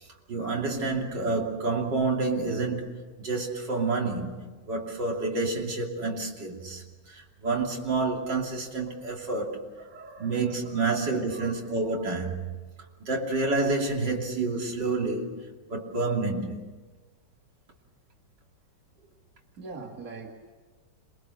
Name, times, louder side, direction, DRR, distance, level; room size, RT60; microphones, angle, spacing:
voice 1, 0.3-2.9 3.2-4.4 4.7-9.6 10.2-12.6 13.0-15.4 15.7-16.6, right 3 dB, 80° right, 3.6 m, -29 dB
voice 2, 9.8-11.6 19.6-20.3, right 3 dB, 50° right, 2.4 m, -44 dB
27.0 x 21.5 x 6.6 m
omnidirectional pair, 1.9 m